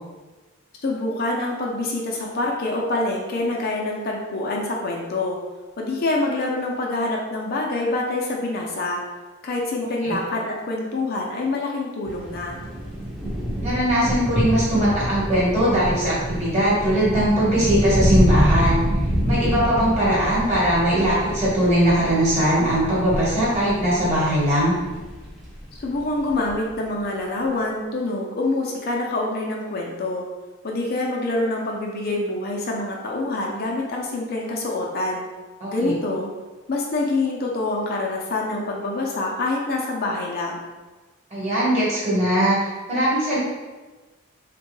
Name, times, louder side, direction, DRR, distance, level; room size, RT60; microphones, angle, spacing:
voice 1, 0.8-5.4 5.8-9.0 9.4-12.6 25.8-30.2 30.6-35.2 35.7-36.3 36.7-40.7, left 2 dB, 45° left, -2 dB, 0.4 m, -26 dB
sound 1, 12.1-26.6, equal, ahead, 0.5 m, -26 dB
voice 2, 13.6-18.8 19.2-24.7 35.6-35.9 41.3-42.6 42.9-43.4, right 1 dB, 30° right, -7 dB, 1.1 m, -20 dB
3.4 x 2.2 x 3.1 m, 1.2 s
head